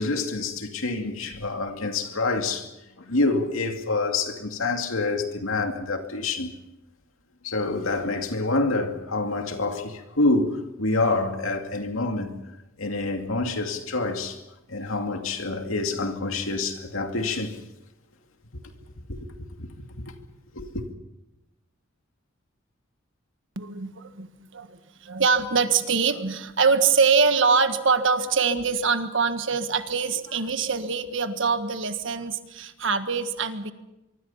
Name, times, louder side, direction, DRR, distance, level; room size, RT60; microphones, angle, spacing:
voice 1, 0.0-2.7 3.0-6.5 7.4-12.4 12.8-14.4 14.7-17.6 19.1-19.3 19.6-19.7 20.0-20.1 20.5-20.8, left 3 dB, 80° left, 2.4 m, -27 dB
voice 2, 23.5-33.7, right 5 dB, 65° right, 1.6 m, -24 dB
24.0 x 24.0 x 5.7 m
head